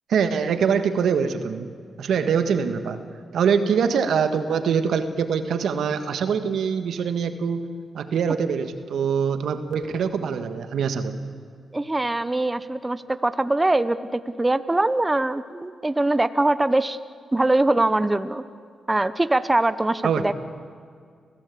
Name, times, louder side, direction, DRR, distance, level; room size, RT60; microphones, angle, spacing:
voice 1, 0.1-1.7 2.0-3.0 3.3-7.6 7.9-11.2 20.0-20.2, right 6 dB, 80° right, 9 dB, 1.6 m, -23 dB
voice 2, 11.7-17.0 17.3-18.4 18.9-20.3, right 2 dB, 20° right, 13 dB, 0.9 m, -22 dB
28.0 x 16.5 x 8.5 m, 2.2 s
cardioid pair, 70°, 0 cm